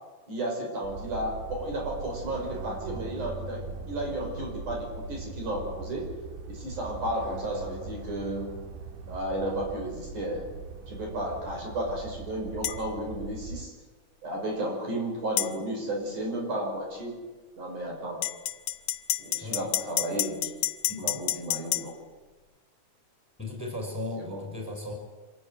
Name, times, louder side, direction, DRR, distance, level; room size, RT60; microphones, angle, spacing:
voice 1, 0.3-6.1 6.5-8.5 9.1-10.4 10.9-13.7 14.2-17.2 17.6-18.2 19.2-20.5 21.0-21.9 24.2-24.4, right 1 dB, 65° right, 1 dB, 7.3 m, -33 dB
sound 1, 0.8-13.7, right 4 dB, 80° right, 3.5 m, -40 dB
sound 2, 12.6-12.8 15.4-15.5 18.2-21.9, left 12 dB, 75° left, 2.2 m, -29 dB
voice 2, 19.4-19.7 20.9-21.1 23.4-24.9, left 2 dB, 5° left, 1 dB, 5.5 m, -36 dB
25.5 x 15.0 x 9.9 m, 1.3 s
omnidirectional pair, 3.8 m